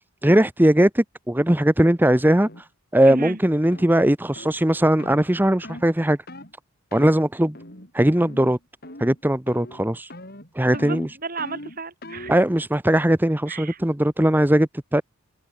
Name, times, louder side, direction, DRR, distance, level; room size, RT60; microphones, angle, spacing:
voice 1, 0.2-2.7 2.9-6.2 6.9-7.6 7.9-8.6 9.0-10.1 10.5-11.1 12.3-15.0, right 1 dB, 10° right, 0.8 m, -19 dB
sound 1, 2.4-2.6 3.1-3.3 3.7-3.9 4.4-4.6 5.0-5.2 5.6-5.9 6.3-6.5 6.9-7.2 7.5-7.9 8.2-8.6 8.8-9.2 9.5-9.8 10.1-12.4, left 1 dB, 45° left, 7.2 m, -40 dB
voice 2, 3.1-3.4 10.7-12.4 13.5-13.8, right 4 dB, 40° right, 3.6 m, -33 dB
head